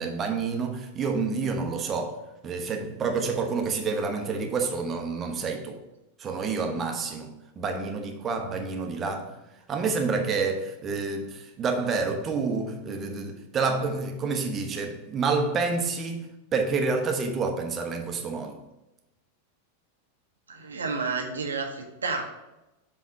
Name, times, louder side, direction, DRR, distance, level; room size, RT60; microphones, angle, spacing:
voice 1, 0.0-5.8 6.2-9.4 9.7-16.3 16.5-18.6, right 4 dB, 25° right, 1.0 m, -28 dB
voice 2, 20.5-22.2, right 4 dB, 70° right, 1.0 m, -30 dB
7.3 x 3.4 x 5.5 m
figure-of-eight pair, 90°, 0 cm